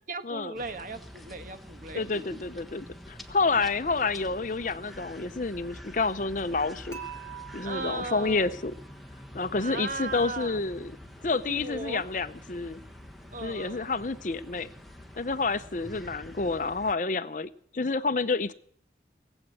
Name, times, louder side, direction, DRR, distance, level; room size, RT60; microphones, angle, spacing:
voice 1, 0.1-2.3 7.6-8.6 9.6-10.6 11.5-12.0 13.3-13.9, right 2 dB, 50° right, 10 dB, 1.3 m, -37 dB
sound 1, 0.6-17.0, equal, ahead, 1.3 m, -46 dB
voice 2, 1.9-7.0 7.5-8.7 9.3-10.9 11.2-12.8 13.4-14.7 15.2-18.5, left 3 dB, 45° left, 13 dB, 0.6 m, -29 dB
Dishes pots and pans / Chink clink, 6.9-9.0, right 9 dB, 15° left, 2.1 m, -45 dB
19.0 x 8.1 x 9.3 m, 0.63 s
head